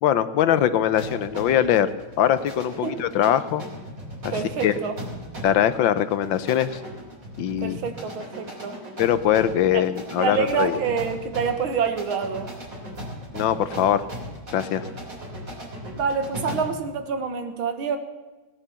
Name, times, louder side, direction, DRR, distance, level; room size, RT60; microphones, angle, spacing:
voice 1, 0.0-1.9 2.2-3.6 4.2-4.8 5.4-6.8 7.4-7.8 9.0-10.8 13.3-14.0 14.5-14.9, left 10 dB, 70° left, 13 dB, 1.4 m, -22 dB
sound 1, 1.0-16.8, equal, 40° right, 3.9 m, -38 dB
voice 2, 4.3-5.0 7.6-8.8 9.7-9.8 10.2-12.5 16.0-18.0, right 6 dB, 75° right, 8 dB, 2.1 m, -27 dB
18.5 x 9.9 x 7.1 m, 1.2 s
omnidirectional pair, 2.3 m